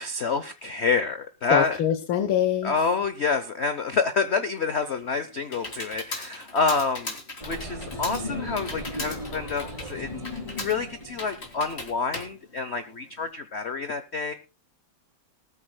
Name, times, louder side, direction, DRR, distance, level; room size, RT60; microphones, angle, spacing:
voice 1, 0.0-1.8 2.6-7.2 7.5-10.1 10.6-14.3, left 4 dB, 55° left, 10 dB, 0.7 m, -27 dB
voice 2, 1.5-2.7, left 10 dB, 85° left, 9 dB, 1.7 m, -24 dB
Computer keyboard, 4.7-13.3, left 2 dB, 30° left, 2.5 m, -39 dB
sound 1, 7.4-11.9, left 1 dB, 15° left, 4.0 m, -36 dB
19.5 x 13.5 x 2.2 m, 0.30 s
omnidirectional pair, 2.2 m